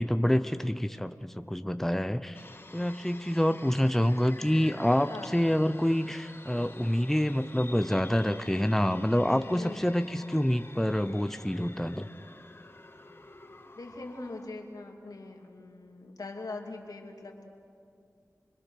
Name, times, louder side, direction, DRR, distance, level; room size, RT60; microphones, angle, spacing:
voice 1, 0.0-2.4 2.7-12.1, equal, 5° left, 10 dB, 0.7 m, -27 dB
sound 1, 2.3-14.5, left 2 dB, 40° left, 2.1 m, -49 dB
voice 2, 5.1-5.4 9.5-9.8 13.7-17.5, left 2 dB, 85° left, 1 dB, 2.6 m, -42 dB
30.0 x 21.5 x 6.4 m, 2.4 s
wide cardioid pair, 50°, 6 cm